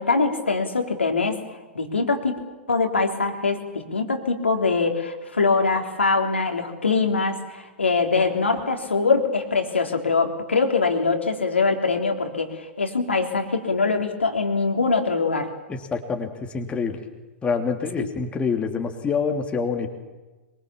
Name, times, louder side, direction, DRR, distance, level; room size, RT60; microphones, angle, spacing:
voice 1, 0.0-1.4 1.7-2.4 2.7-15.5 18.0-18.1, left 4 dB, 80° left, 3 dB, 3.6 m, -23 dB
voice 2, 15.7-16.3 16.5-17.0 17.4-19.9, left 5 dB, 15° left, 4 dB, 3.0 m, -26 dB
24.5 x 23.5 x 7.4 m, 1.2 s
figure-of-eight pair, 100°, 6 cm